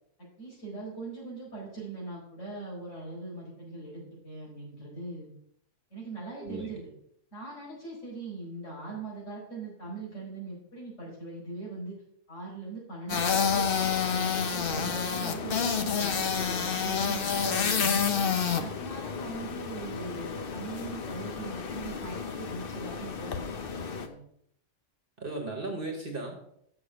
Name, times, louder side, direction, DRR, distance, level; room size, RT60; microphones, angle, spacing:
voice 1, 0.4-5.3 5.9-6.9 7.3-12.0 12.3-13.6 14.0-18.0 18.6-24.2, right 3 dB, 70° left, -5 dB, 5.0 m, -41 dB
voice 2, 6.4-6.7 25.2-26.6, right 2 dB, 45° right, 2 dB, 1.5 m, -36 dB
sound 1, 13.1-24.1, left 6 dB, 50° left, 1.0 m, -30 dB
7.0 x 6.6 x 6.8 m, 0.71 s
omnidirectional pair, 1.3 m